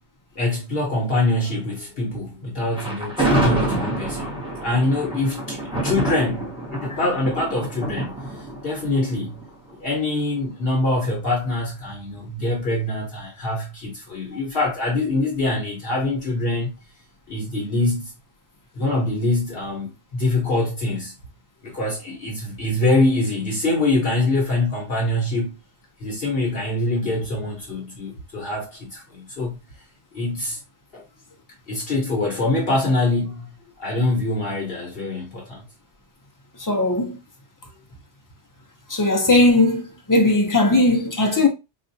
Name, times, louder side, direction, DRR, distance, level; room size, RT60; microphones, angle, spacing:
voice 1, 0.3-4.3 4.6-8.2 8.6-9.4 9.8-16.8 17.3-18.1 18.7-21.1 21.6-25.5 26.0-29.6 30.1-30.6 30.9-31.0 31.7-35.6, left 2 dB, 55° left, 1.0 m, -24 dB
Thunder, 2.7-9.9, right 1 dB, 5° right, 0.9 m, -27 dB
voice 2, 36.6-37.2 38.9-41.5, left 2 dB, 20° left, 0.5 m, -18 dB
4.0 x 2.4 x 2.6 m
omnidirectional pair, 1.2 m